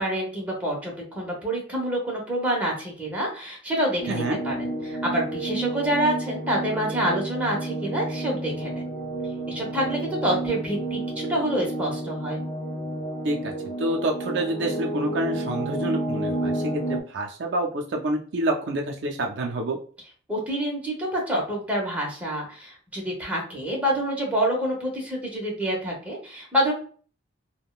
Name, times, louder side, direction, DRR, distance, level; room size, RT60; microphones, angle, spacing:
voice 1, 0.0-8.8 9.5-12.4 20.3-26.7, right 1 dB, 5° right, -3 dB, 0.9 m, -27 dB
sound 1, 4.0-17.0, right 1 dB, 35° left, 0.6 m, -31 dB
voice 2, 4.1-4.4 13.2-13.5 13.8-19.8, right 1 dB, 60° right, 1 dB, 0.4 m, -27 dB
3.5 x 2.1 x 2.3 m, 0.42 s
head